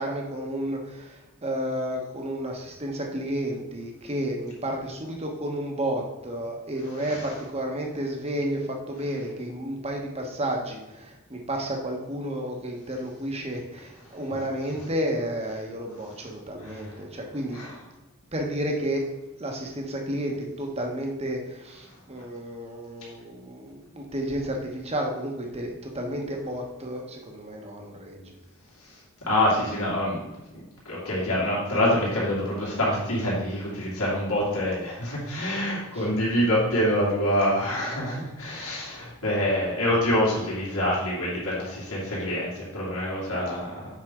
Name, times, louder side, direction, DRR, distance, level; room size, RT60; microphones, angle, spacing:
voice 1, 0.0-17.6 18.3-19.1 19.4-28.3 35.9-36.1, right 1 dB, 30° right, 1 dB, 1.2 m, -31 dB
voice 2, 29.3-30.3 30.8-43.9, left 1 dB, 75° left, -7 dB, 2.4 m, -26 dB
7.8 x 5.7 x 3.7 m, 1.0 s
head